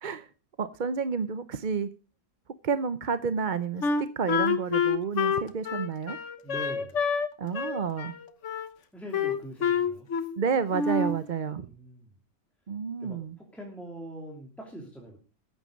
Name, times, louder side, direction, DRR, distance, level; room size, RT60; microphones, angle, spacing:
voice 1, 0.6-1.9 2.6-6.2 7.4-8.1 10.4-11.7 12.7-13.4, right 6 dB, 45° right, 12 dB, 0.7 m, -30 dB
Wind instrument woodwind instrument, 3.8-7.3 7.5-8.7 9.1-10.4 10.7-11.2, left 5 dB, 65° left, 1.5 m, -27 dB
voice 2, 6.4-7.0 8.9-10.1 11.5-12.1 13.0-15.2, right 1 dB, ahead, -1 dB, 2.9 m, -43 dB
15.0 x 9.2 x 5.2 m, 0.35 s
omnidirectional pair, 1.4 m